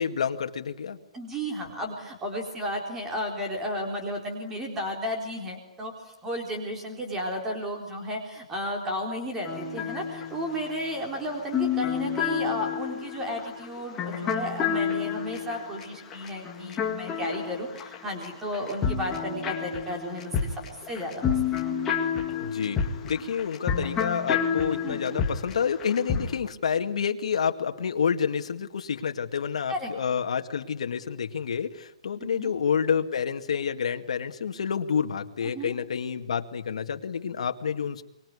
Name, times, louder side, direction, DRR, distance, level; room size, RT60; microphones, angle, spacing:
voice 1, 0.0-1.0 22.4-22.8 23.0-38.0, left 7 dB, 65° left, 6 dB, 2.1 m, -28 dB
voice 2, 1.1-5.9 6.2-20.6 20.9-21.7 24.8-25.2 29.7-29.9 32.2-32.5 35.4-35.7, equal, 10° right, 2 dB, 3.9 m, -33 dB
sound 1, 9.4-18.3 18.5-26.4, left 7 dB, 10° left, 1.9 m, -30 dB
25.0 x 23.0 x 9.8 m, 0.81 s
hypercardioid pair, 180°, 4 cm